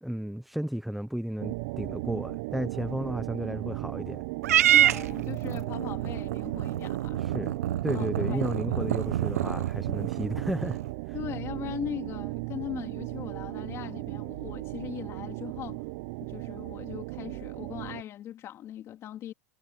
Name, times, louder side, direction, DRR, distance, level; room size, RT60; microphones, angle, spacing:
voice 1, 0.0-4.2 7.2-7.5 7.8-10.8 11.1-11.2, equal, ahead, 0.8 m, -33 dB
sound 1, 1.4-18.0, right 23 dB, 60° right, 0.9 m, -36 dB
Purr / Meow, 4.4-10.9, right 12 dB, 90° right, 0.9 m, -27 dB
voice 2, 4.7-7.2 7.9-8.4 8.7-8.9 11.1-15.8 16.2-19.3, left 11 dB, 35° left, 2.9 m, -39 dB
supercardioid pair, 130°, 8 cm